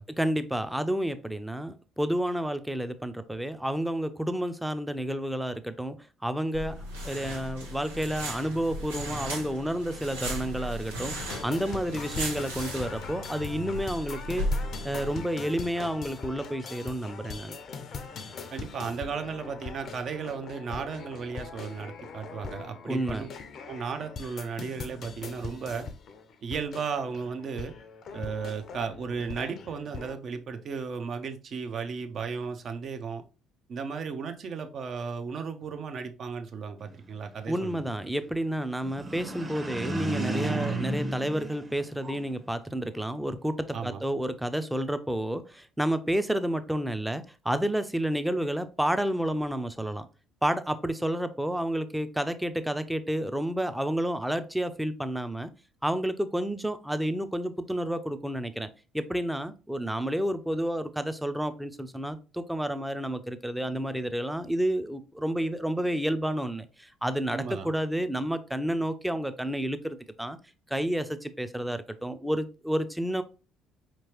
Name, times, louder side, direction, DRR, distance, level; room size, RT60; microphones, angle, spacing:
voice 1, 0.2-6.8 7.0-14.5 14.8-17.6 22.8-23.3 37.5-50.1 50.4-55.5 55.8-58.7 58.9-70.4 70.7-73.2, right 1 dB, 5° right, 0.5 m, -30 dB
sound 1, 6.5-15.1, equal, 85° right, 1.0 m, -36 dB
sound 2, 11.1-30.1, left 5 dB, 50° left, 0.5 m, -41 dB
voice 2, 18.5-23.3 23.7-25.9 26.4-27.7 28.1-33.2 33.7-37.9 43.7-44.0 67.3-67.7, right 5 dB, 50° right, 0.6 m, -35 dB
sound 3, 38.8-42.4, right 2 dB, 25° right, 0.9 m, -33 dB
4.8 x 3.0 x 2.9 m
figure-of-eight pair, 50°, 0 cm